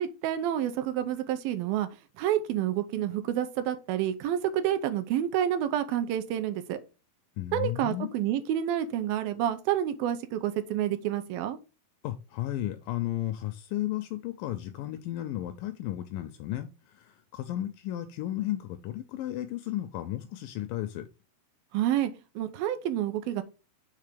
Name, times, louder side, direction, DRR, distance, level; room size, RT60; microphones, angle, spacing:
voice 1, 0.0-1.9 2.2-6.8 7.5-11.6 21.7-23.4, right 11 dB, 80° right, 2.4 m, -29 dB
voice 2, 7.4-8.1 12.0-21.1, left 13 dB, 80° left, 2.0 m, -34 dB
6.6 x 3.4 x 5.0 m
omnidirectional pair, 4.3 m